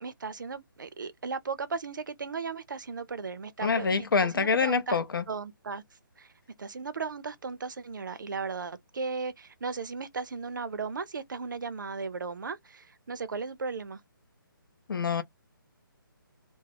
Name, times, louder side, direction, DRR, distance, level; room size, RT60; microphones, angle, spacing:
voice 1, 0.0-5.0 5.3-5.8 6.2-6.3 6.6-14.0, right 4 dB, 60° right, 0.5 m, -36 dB
voice 2, 3.6-5.2 14.9-15.2, left 5 dB, 70° left, 0.6 m, -26 dB
2.4 x 2.0 x 3.3 m
hypercardioid pair, 175°, 12 cm